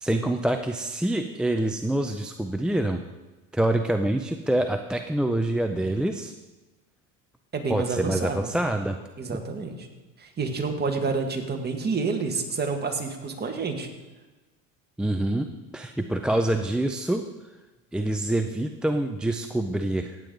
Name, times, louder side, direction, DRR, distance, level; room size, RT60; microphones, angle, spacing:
voice 1, 0.0-3.0 3.5-6.3 7.7-9.0 9.3-9.4 15.0-15.5 15.7-17.2 17.9-20.2, right 1 dB, ahead, 5 dB, 0.4 m, -26 dB
voice 2, 7.5-8.5 9.2-9.9 10.2-13.9, right 4 dB, 25° right, 3 dB, 2.0 m, -29 dB
16.5 x 8.8 x 3.9 m, 1.1 s
supercardioid pair, 105°, 43 cm